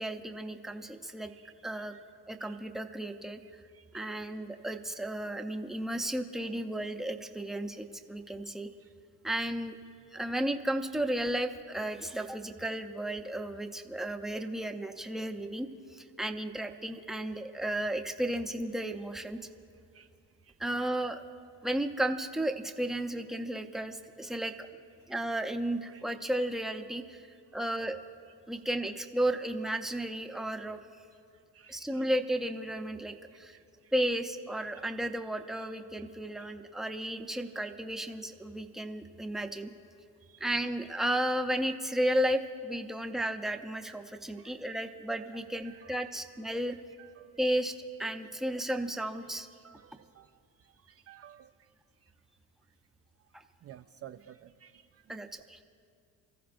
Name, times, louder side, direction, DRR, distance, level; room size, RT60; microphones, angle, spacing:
voice 1, 0.0-1.3 1.6-1.9 2.3-3.4 3.9-8.7 9.2-9.8 10.1-19.4 20.6-21.2 21.6-24.7 25.1-27.2 27.5-28.0 28.5-30.8 31.7-33.6 33.9-39.7 40.4-46.8 47.4-47.7 48.0-49.5 53.3-53.4 55.1-55.6, right 1 dB, ahead, 6 dB, 0.7 m, -33 dB
voice 2, 1.3-2.0 2.4-2.6 3.4-4.2 4.6-4.7 8.8-8.9 19.9-20.1 20.4-20.9 24.3-24.5 25.9-26.1 31.5-32.1 33.3-33.9 36.4-36.5 37.0-37.1 40.2-40.5 44.4-44.8 45.6-46.2 46.7-47.3 49.6-51.7 53.6-55.2, right 10 dB, 40° right, 8 dB, 0.4 m, -56 dB
28.0 x 14.5 x 2.6 m, 2.3 s
cardioid pair, 105°, 37 cm